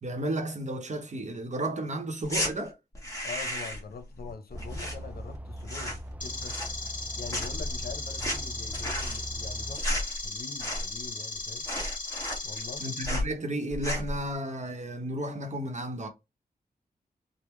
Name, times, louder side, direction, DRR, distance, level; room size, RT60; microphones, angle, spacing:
voice 1, 0.0-2.8 12.8-16.1, right 1 dB, 50° right, 0.8 m, -33 dB
sound 1, 2.3-2.5 2.9-3.9 4.2-5.4 5.6-6.1 6.4-7.0 7.3-11.1 11.4-11.5 11.7-12.8 13.0-13.3 13.7-14.2, equal, 20° left, 1.2 m, -33 dB
voice 2, 3.2-6.6 7.1-11.7 12.4-12.9, left 5 dB, 80° left, 0.7 m, -43 dB
sound 2, 4.5-9.8, right 1 dB, 10° right, 0.3 m, -41 dB
sound 3, 6.2-13.1, left 3 dB, 55° left, 0.9 m, -37 dB
3.4 x 2.1 x 3.0 m
wide cardioid pair, 85°, 16 cm